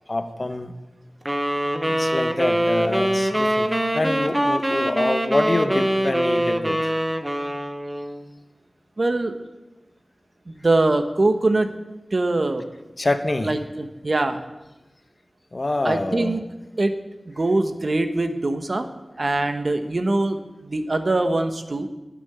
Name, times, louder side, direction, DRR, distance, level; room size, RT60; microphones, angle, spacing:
voice 1, 0.1-0.7 1.9-6.9 13.0-13.6 15.5-16.4, left 2 dB, 45° left, 9 dB, 1.0 m, -26 dB
sound 1, 1.3-8.2, equal, 15° right, 1.1 m, -23 dB
voice 2, 9.0-9.3 10.5-11.7 12.1-12.6 13.4-14.4 15.8-16.4 16.8-16.9 17.3-18.9 19.2-21.9, right 2 dB, 55° right, 7 dB, 1.2 m, -22 dB
12.0 x 6.2 x 9.5 m, 1.1 s
wide cardioid pair, 50°, 0 cm